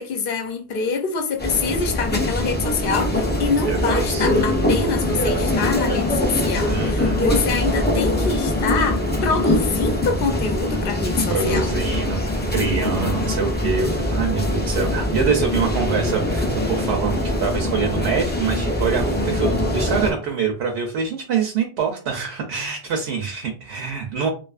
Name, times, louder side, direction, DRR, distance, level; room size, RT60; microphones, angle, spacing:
voice 1, 0.0-11.8, left 4 dB, 60° left, 0.7 m, -25 dB
sound 1, 1.4-20.1, left 1 dB, 15° left, 0.3 m, -22 dB
voice 2, 3.6-4.3 6.7-7.3 11.3-12.2 12.5-24.3, right 6 dB, 75° right, 0.8 m, -25 dB
2.5 x 2.4 x 2.3 m
omnidirectional pair, 1.1 m